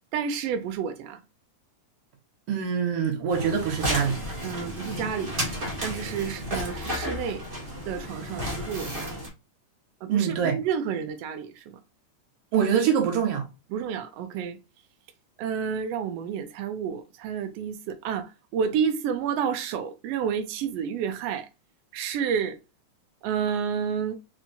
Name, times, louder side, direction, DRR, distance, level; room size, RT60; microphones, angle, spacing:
voice 1, 0.1-1.2 4.4-5.4 5.8-7.4 7.8-9.2 10.0-11.8 13.7-14.6 15.4-21.5 21.9-22.6 23.2-24.2, right 7 dB, 80° right, 1.4 m, -30 dB
voice 2, 2.5-4.2 10.1-10.6 12.5-13.5, right 7 dB, 60° right, 2.0 m, -24 dB
sound 1, 3.3-9.3, equal, 40° right, 0.8 m, -32 dB
4.5 x 4.4 x 2.6 m
omnidirectional pair, 3.4 m